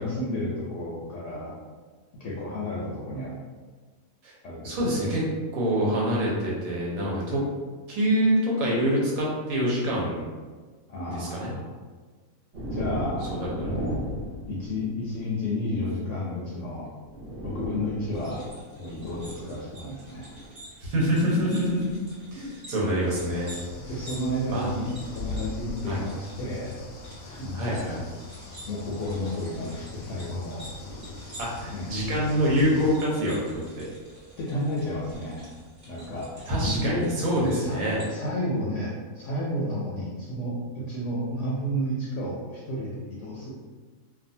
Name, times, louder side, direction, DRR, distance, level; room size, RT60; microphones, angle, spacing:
voice 1, 0.0-1.6 2.2-3.3 4.4-4.8 10.9-11.7 12.7-14.0 14.5-16.9 17.4-18.5 18.8-20.3 23.8-26.8 27.2-28.0 28.6-30.7 31.7-31.9 34.4-35.5 35.9-37.1 37.4-37.8 38.1-43.5, left 1 dB, 70° left, -5 dB, 0.8 m, -32 dB
voice 2, 4.6-5.2 5.5-7.4 7.9-10.3 11.1-11.5 13.4-13.8 20.8-22.0 22.3-23.5 24.5-24.7 25.9-26.0 27.5-28.0 31.4-33.8 36.5-38.0, equal, 85° right, -4 dB, 1.2 m, -26 dB
sound 1, 12.5-15.2 16.5-16.6 17.0-20.6 21.4-21.7 22.9-25.8 27.3-27.4 29.1-29.9 30.7-32.1, right 1 dB, 60° right, 1.1 m, -38 dB
sound 2, 18.1-38.1, equal, 40° right, 0.9 m, -48 dB
sound 3, 23.1-33.0, left 3 dB, 90° left, 1.0 m, -41 dB
2.6 x 2.3 x 2.6 m, 1.4 s
omnidirectional pair, 1.5 m